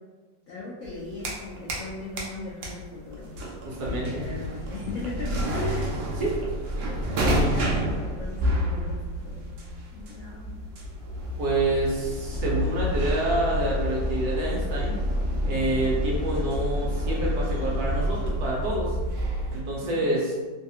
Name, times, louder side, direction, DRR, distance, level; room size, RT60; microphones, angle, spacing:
voice 1, 0.5-3.3 3.8-6.0 7.1-9.4 9.9-10.6 15.5-15.9 19.8-20.1, left 3 dB, 80° left, -5 dB, 0.7 m, -38 dB
sound 1, 0.8-1.9 2.2-19.6, equal, 85° right, 0.6 m, -29 dB
voice 2, 3.7-4.3 6.2-6.4 11.4-14.9 15.5-19.0 19.5-20.3, right 1 dB, 65° right, -4 dB, 1.1 m, -27 dB
3.2 x 2.3 x 2.7 m, 1.3 s
omnidirectional pair, 2.0 m